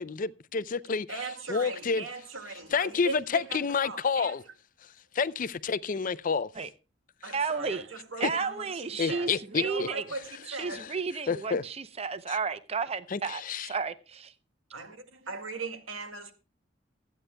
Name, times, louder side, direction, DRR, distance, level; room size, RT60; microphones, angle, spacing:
voice 1, 0.0-1.1 1.5-2.0 2.7-4.4 5.1-6.5 8.2-8.3 9.0-9.9 10.7-10.9 11.3-11.6 12.3-12.4 13.1-13.7, left 5 dB, 45° left, 0.5 m, -29 dB
voice 2, 1.1-4.4 7.2-10.9 14.7-16.3, right 3 dB, 85° right, 2.0 m, -39 dB
voice 3, 7.3-7.8 8.2-10.0 10.5-13.4 13.7-14.3, right 5 dB, 30° right, 0.6 m, -32 dB
25.5 x 9.2 x 2.2 m
head